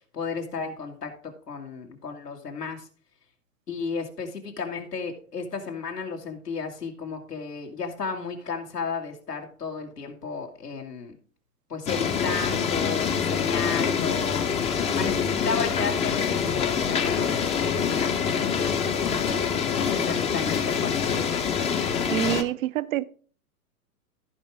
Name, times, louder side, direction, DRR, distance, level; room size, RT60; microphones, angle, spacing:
voice 1, 0.1-2.9 3.7-11.2 11.7-14.5 14.9-21.1, left 5 dB, 90° left, 2.3 m, -33 dB
sound 1, 11.9-22.4, left 7 dB, 15° left, 0.6 m, -25 dB
voice 2, 22.1-23.1, right 14 dB, 55° right, 0.6 m, -26 dB
15.5 x 5.1 x 3.5 m
hypercardioid pair, 115°, 47 cm